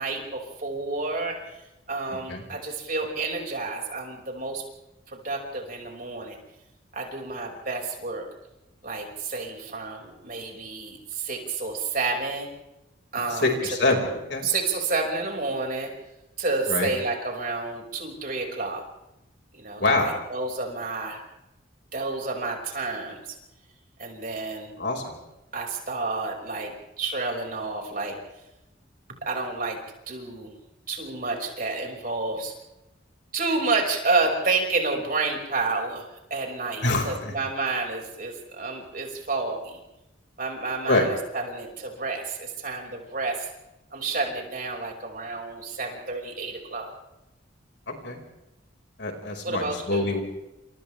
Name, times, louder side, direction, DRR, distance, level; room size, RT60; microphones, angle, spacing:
voice 1, 0.0-1.4 1.9-4.6 5.1-6.4 6.9-8.2 8.8-12.5 13.1-13.5 14.4-15.9 16.4-18.8 19.5-21.2 21.9-23.4 24.0-24.7 25.5-28.2 29.2-29.8 30.1-30.5 30.9-32.5 33.3-39.8 40.4-43.5 43.9-46.9 49.4-50.1, right 3 dB, 45° right, 0 dB, 5.6 m, -30 dB
voice 2, 13.3-14.0 14.3-14.5 16.7-16.9 19.8-20.1 24.8-25.2 36.8-37.3 40.9-41.1 48.0-48.2 49.0-50.2, left 2 dB, 60° left, 2 dB, 5.0 m, -25 dB
29.5 x 28.0 x 3.4 m, 0.93 s
head